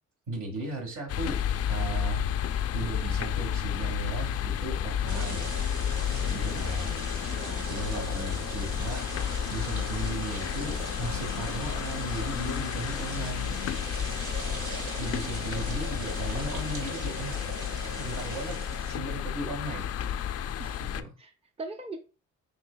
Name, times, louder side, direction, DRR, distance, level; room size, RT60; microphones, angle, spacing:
voice 1, 0.3-2.4 2.7-5.5 6.3-7.0 7.6-9.1 9.5-13.6 15.0-17.4 18.0-19.9 20.3-20.5 20.8-21.1, right 2 dB, 70° right, 2 dB, 1.7 m, -36 dB
sound 1, 1.1-21.0, left 9 dB, 55° left, 0.4 m, -31 dB
sound 2, 5.1-19.0, right 3 dB, 85° right, 1.5 m, -40 dB
voice 2, 7.3-7.7 15.1-15.8 20.6-20.9 21.2-22.0, right 3 dB, 20° right, 5 dB, 0.6 m, -43 dB
6.0 x 3.4 x 2.2 m, 0.33 s
cardioid pair, 90°, 30 cm